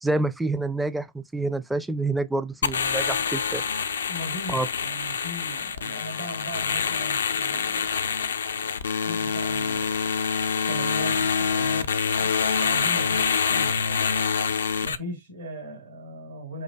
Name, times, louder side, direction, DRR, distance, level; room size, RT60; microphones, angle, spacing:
voice 1, 0.0-3.6 4.5-4.7, right 2 dB, 5° right, 0.4 m, -27 dB
sound 1, 2.6-15.0, left 6 dB, 70° left, 0.3 m, -26 dB
voice 2, 4.1-7.9 9.0-10.0 10.7-11.9 12.6-14.1 14.8-16.6, right 1 dB, 80° right, 2.4 m, -38 dB
4.7 x 2.1 x 2.3 m
figure-of-eight pair, 90°, 0 cm